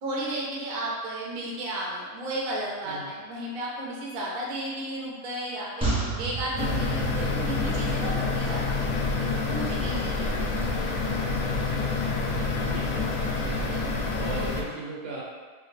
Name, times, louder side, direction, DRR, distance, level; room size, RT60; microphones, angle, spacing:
voice 1, 0.0-5.9 6.2-8.9 9.5-11.1, right 1 dB, 50° right, -4 dB, 0.7 m, -34 dB
sound 1, 5.8-9.2 9.5-9.6, right 3 dB, 5° right, 0.4 m, -32 dB
sound 2, 6.6-14.6, left 3 dB, 70° left, 0.7 m, -27 dB
voice 2, 12.6-13.9 14.2-15.2, right 2 dB, 80° right, -4 dB, 1.3 m, -37 dB
3.1 x 2.8 x 3.2 m, 1.5 s
omnidirectional pair, 1.7 m